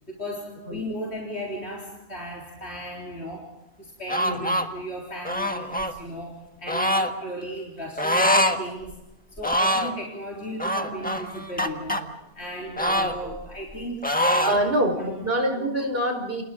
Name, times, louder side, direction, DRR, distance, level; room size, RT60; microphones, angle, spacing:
voice 1, 0.1-3.5 3.8-9.0 9.4-15.2, equal, 70° left, -3 dB, 4.3 m, -36 dB
sound 1, 4.1-4.7 5.2-5.9 6.7-7.1 8.0-8.6 8.9-9.0 9.4-9.9 10.6-12.0 12.8-13.8 14.0-14.6, equal, 10° left, 1.4 m, -24 dB
voice 2, 4.2-4.7 12.9-13.3 14.4-16.4, right 1 dB, 60° right, 3 dB, 4.9 m, -26 dB
30.0 x 29.0 x 3.8 m, 0.97 s
omnidirectional pair, 1.1 m